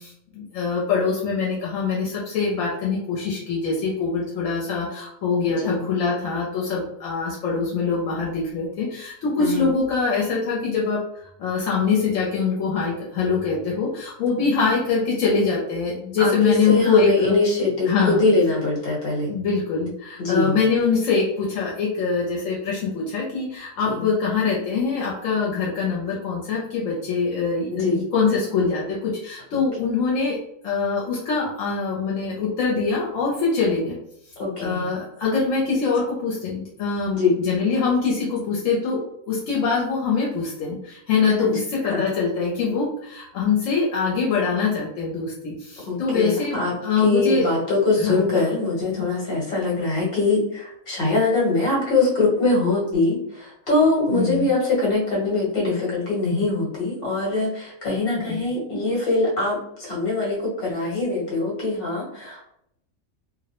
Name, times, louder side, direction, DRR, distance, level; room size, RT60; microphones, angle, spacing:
voice 1, 0.0-17.3 17.9-18.2 19.3-30.4 30.6-34.0 34.6-37.2 37.4-39.0 39.3-47.5 48.0-48.3 49.0-49.1 54.1-54.5 58.3-58.4, left 5 dB, 75° left, -4 dB, 0.9 m, -23 dB
voice 2, 5.5-5.8 9.4-9.7 14.6-14.7 16.2-19.3 20.2-20.6 23.9-24.1 27.7-28.0 29.5-29.6 34.4-34.9 37.1-37.3 41.4-41.5 41.8-42.0 45.8-62.4, left 3 dB, 50° left, -4 dB, 1.2 m, -23 dB
2.4 x 2.0 x 2.8 m, 0.75 s
omnidirectional pair, 1.4 m